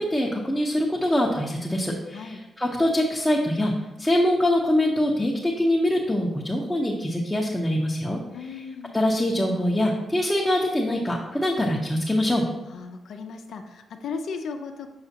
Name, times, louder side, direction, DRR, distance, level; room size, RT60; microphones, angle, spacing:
voice 1, 0.0-3.7 4.0-8.6 8.9-12.4, left 1 dB, 10° left, -3 dB, 0.8 m, -24 dB
voice 2, 8.3-9.0 12.7-14.9, left 5 dB, 75° left, 5 dB, 0.5 m, -36 dB
7.0 x 4.9 x 2.8 m, 1.0 s
cardioid pair, 85°, 0 cm